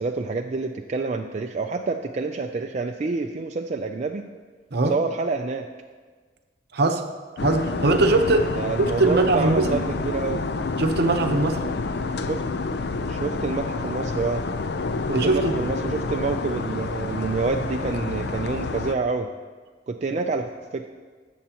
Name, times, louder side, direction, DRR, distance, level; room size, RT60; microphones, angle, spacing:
voice 1, 0.0-4.3 4.9-5.7 8.6-10.4 12.3-12.4 13.1-14.4 15.1-19.3 19.9-20.8, right 4 dB, 40° right, 3 dB, 0.4 m, -27 dB
sound 1, 7.4-18.9, left 3 dB, 65° left, 0.5 m, -29 dB
voice 2, 7.4-8.5 8.8-9.8 10.8-11.7 15.1-15.5, right 2 dB, 65° right, 5 dB, 0.9 m, -21 dB
18.0 x 7.3 x 2.9 m, 1.5 s
head